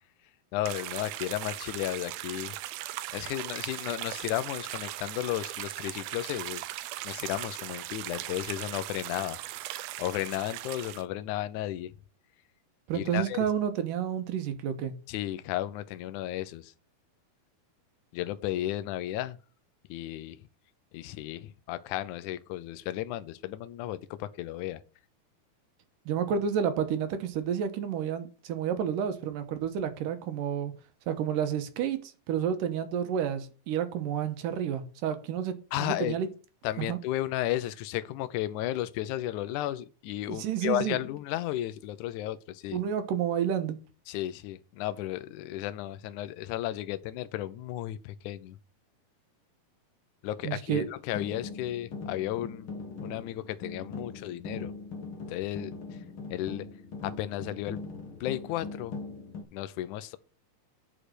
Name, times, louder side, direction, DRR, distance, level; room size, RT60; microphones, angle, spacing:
voice 1, 0.5-2.5 3.1-6.6 7.0-9.4 9.7-11.9 12.9-13.5 15.1-16.7 18.1-19.4 19.9-20.4 20.9-24.8 35.7-36.2 36.6-42.8 44.1-48.6 50.2-54.7 55.3-56.0 56.3-56.7 57.0-57.8 58.2-58.9 59.5-60.2, left 14 dB, 85° left, 1.7 m, -34 dB
sound 1, 0.6-11.0, right 15 dB, 90° right, 1.8 m, -38 dB
voice 2, 12.9-14.9 26.1-30.7 31.1-36.3 36.8-37.0 40.3-41.0 42.7-43.8 50.4-50.8, right 8 dB, 70° right, 2.5 m, -30 dB
sound 2, 51.1-59.4, left 4 dB, 55° left, 1.5 m, -41 dB
10.0 x 5.2 x 6.2 m
omnidirectional pair, 4.4 m